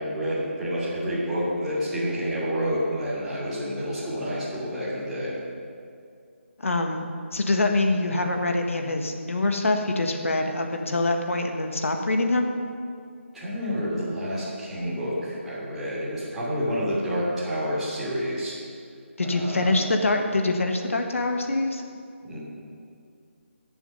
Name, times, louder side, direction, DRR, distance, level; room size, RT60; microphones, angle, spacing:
voice 1, 0.0-5.3 13.3-18.5 19.2-19.8 22.2-22.4, equal, 5° right, -12 dB, 3.2 m, -29 dB
voice 2, 6.6-7.1 7.3-12.5 19.2-21.8, left 2 dB, 80° left, 3 dB, 1.7 m, -24 dB
18.5 x 7.1 x 5.7 m, 2.3 s
figure-of-eight pair, 165°, 7 cm